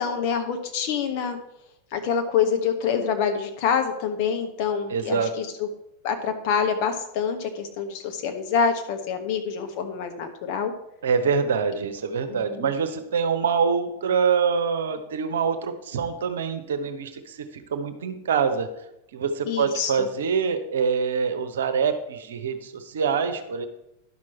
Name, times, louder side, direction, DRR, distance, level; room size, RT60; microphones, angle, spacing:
voice 1, 0.0-1.4 1.9-5.7 6.0-10.7 12.3-12.7 19.5-19.9, left 6 dB, 45° left, 5 dB, 1.3 m, -26 dB
voice 2, 4.9-5.3 11.0-18.7 19.1-23.7, right 6 dB, 60° right, 8 dB, 1.0 m, -25 dB
11.0 x 6.2 x 4.3 m, 0.83 s
figure-of-eight pair, 90°, 0 cm